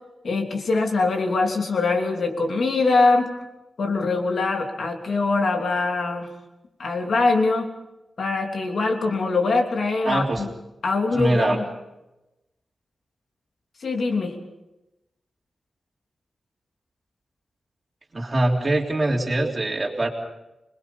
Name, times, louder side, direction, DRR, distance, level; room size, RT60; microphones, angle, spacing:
voice 1, 0.2-3.3 3.8-6.3 6.8-7.7 8.2-10.5 10.8-11.6 13.8-14.3, left 3 dB, 55° left, 3 dB, 3.1 m, -23 dB
voice 2, 10.1-10.4 11.1-11.6 18.1-20.1, right 2 dB, 25° right, -1 dB, 3.5 m, -23 dB
26.5 x 21.5 x 5.5 m, 0.96 s
wide cardioid pair, 165°, 0 cm